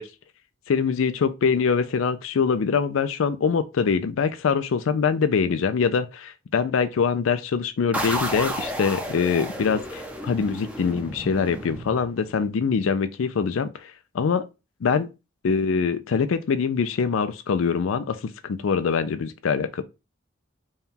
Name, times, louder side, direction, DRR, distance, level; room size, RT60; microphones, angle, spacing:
voice 1, 0.7-14.5 14.8-15.1 15.4-19.8, left 6 dB, 80° left, 0.4 m, -24 dB
sound 1, 7.9-12.5, right 1 dB, 5° right, 0.6 m, -32 dB
4.1 x 2.3 x 3.7 m
head